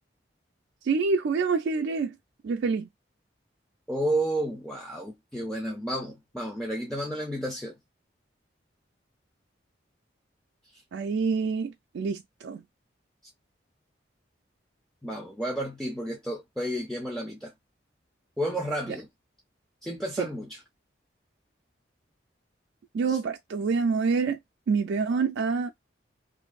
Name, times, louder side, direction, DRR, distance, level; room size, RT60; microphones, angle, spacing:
voice 1, 0.8-2.1 2.4-2.9 10.9-12.6 18.9-19.0 20.2-20.3 22.9-24.4 24.7-25.7, right 5 dB, 75° right, 0.3 m, -27 dB
voice 2, 3.9-7.7 15.0-17.5 18.4-19.1 19.8-20.6 23.1-23.2, right 1 dB, 5° left, 0.4 m, -31 dB
2.6 x 2.6 x 2.3 m
head